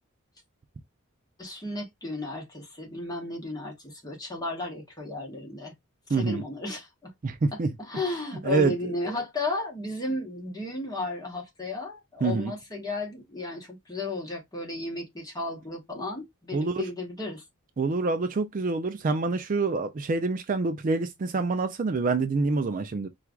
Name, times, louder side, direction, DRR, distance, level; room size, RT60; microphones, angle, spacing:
voice 1, 1.4-5.7 6.1-7.1 7.9-17.4, left 2 dB, 20° left, 1.2 m, -34 dB
voice 2, 6.1-6.4 7.2-7.7 8.4-9.1 12.2-12.5 16.5-16.9 17.8-23.1, right 3 dB, 40° right, 0.4 m, -26 dB
4.4 x 2.4 x 2.3 m
head